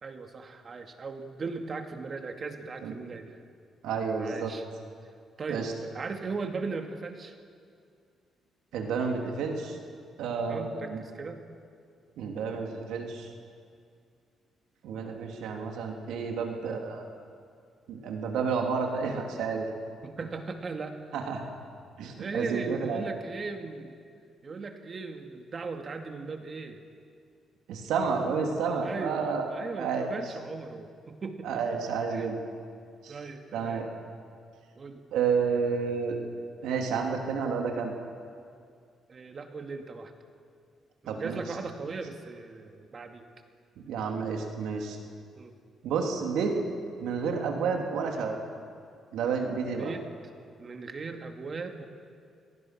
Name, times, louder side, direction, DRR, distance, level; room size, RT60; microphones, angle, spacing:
voice 1, 0.0-3.4 4.2-4.6 5.4-7.3 10.5-11.4 20.0-21.2 22.1-24.0 24.4-26.8 28.8-31.6 32.1-32.3 33.1-33.9 34.8-35.0 39.1-40.1 41.0-43.2 45.4-45.5 49.7-50.0 50.6-51.8, right 4 dB, 40° right, 5 dB, 2.3 m, -38 dB
voice 2, 3.8-4.5 5.5-5.7 8.7-9.8 10.2-11.0 12.2-13.3 14.8-17.0 17.9-19.7 21.1-21.4 22.0-23.0 27.7-29.5 29.8-30.1 31.4-32.4 33.0-33.1 33.5-33.9 35.1-36.2 36.6-37.9 41.0-41.4 43.8-45.0 45.8-46.5 47.0-48.4 49.1-49.9, right 5 dB, 85° right, 2 dB, 3.2 m, -30 dB
28.0 x 18.5 x 6.1 m, 2.3 s
cardioid pair, 90°, 0 cm